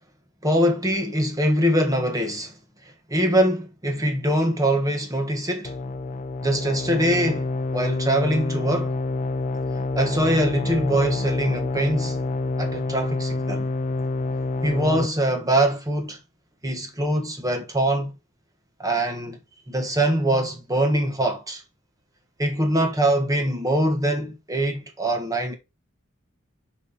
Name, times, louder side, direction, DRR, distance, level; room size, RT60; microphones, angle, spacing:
voice 1, 0.4-2.5 3.1-5.7 6.4-8.9 9.9-12.2 12.6-13.7 14.6-16.2 16.6-18.1 18.8-19.4 19.7-21.6 22.4-25.5, right 1 dB, 15° right, 1.4 m, -23 dB
sound 1, 5.6-15.1, left 2 dB, 35° left, 0.4 m, -27 dB
5.6 x 5.2 x 4.1 m
head